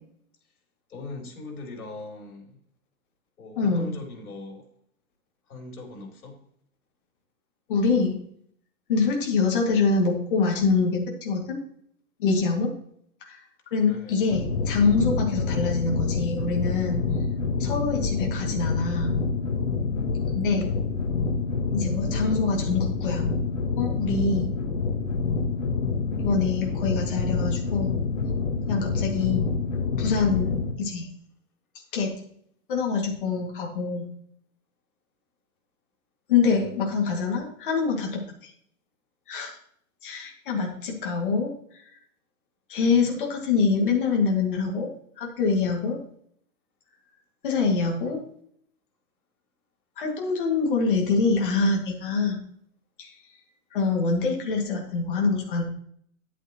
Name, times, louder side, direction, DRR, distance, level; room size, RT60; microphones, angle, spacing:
voice 1, 0.9-2.6 3.4-4.7 5.5-6.4 13.8-14.2 36.6-36.7, left 3 dB, 80° left, 2 dB, 3.8 m, -40 dB
voice 2, 3.6-3.9 7.7-8.2 8.9-11.6 12.2-12.7 13.2-13.4 13.7-17.0 17.6-19.2 20.3-20.7 21.7-23.2 23.8-24.5 26.2-27.9 28.7-29.5 30.0-31.1 31.9-32.1 32.7-34.0 36.3-38.2 39.3-39.5 40.0-41.5 42.7-44.9 45.2-46.0 47.4-48.2 50.0-52.4 53.0-53.1 53.7-55.6, left 4 dB, 35° left, 0 dB, 2.1 m, -25 dB
sound 1, 14.3-30.7, left 4 dB, 60° left, 1.5 m, -27 dB
10.5 x 8.1 x 3.0 m, 0.65 s
hypercardioid pair, 180°, 43 cm